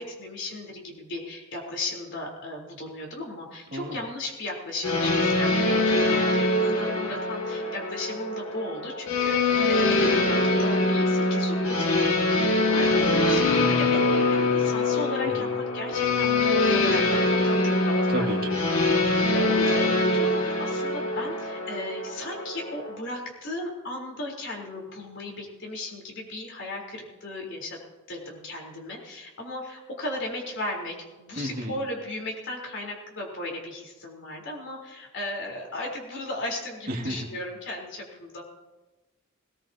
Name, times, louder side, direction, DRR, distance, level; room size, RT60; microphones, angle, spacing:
voice 1, 0.0-18.3 18.7-27.8 28.1-38.4, left 2 dB, 60° left, -1 dB, 4.0 m, -36 dB
sound 1, 4.8-22.9, left 2 dB, 85° left, 2.0 m, -24 dB
voice 2, 18.1-18.6 31.4-31.7 36.9-37.3, equal, 45° right, 0 dB, 2.4 m, -32 dB
19.0 x 18.5 x 2.9 m, 1.1 s
head